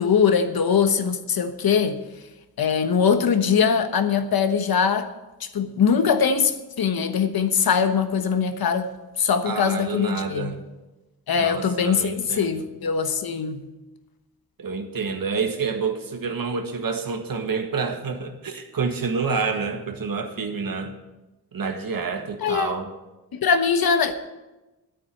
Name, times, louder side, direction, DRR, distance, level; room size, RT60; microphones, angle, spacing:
voice 1, 0.0-2.0 2.6-5.1 5.4-8.9 9.2-10.5 11.3-13.6 22.4-22.7 23.3-24.2, left 6 dB, 65° left, 9 dB, 1.2 m, -22 dB
voice 2, 9.4-10.6 11.4-12.7 14.6-20.9 21.5-22.9, right 5 dB, 60° right, 6 dB, 1.7 m, -28 dB
9.8 x 8.6 x 8.6 m, 1.1 s
cardioid pair, 75°, 38 cm